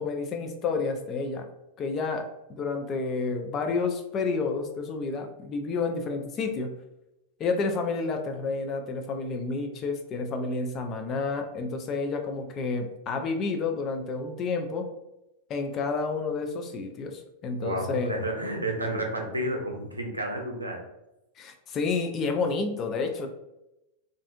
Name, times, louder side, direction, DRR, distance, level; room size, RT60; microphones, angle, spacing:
voice 1, 0.0-1.5 1.8-6.7 7.4-14.9 15.5-18.2 21.4-23.3, left 4 dB, 30° left, 4 dB, 0.4 m, -30 dB
voice 2, 17.6-20.8, right 1 dB, 80° right, 1 dB, 0.5 m, -31 dB
2.4 x 2.4 x 2.5 m, 0.90 s
figure-of-eight pair, 90°, 0 cm